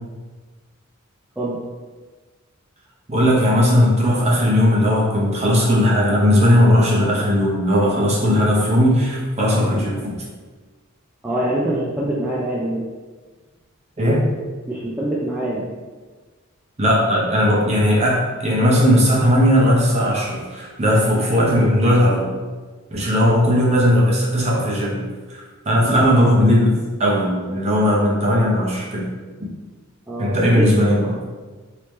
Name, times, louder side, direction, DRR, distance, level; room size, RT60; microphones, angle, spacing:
voice 1, 3.1-10.2 14.0-14.3 16.8-22.3 22.9-29.1 30.2-31.1, equal, 30° right, -4 dB, 0.8 m, -17 dB
voice 2, 11.2-12.8 14.7-15.6 30.1-30.7, right 1 dB, 5° right, -8 dB, 0.4 m, -24 dB
3.3 x 2.9 x 3.1 m, 1.4 s
head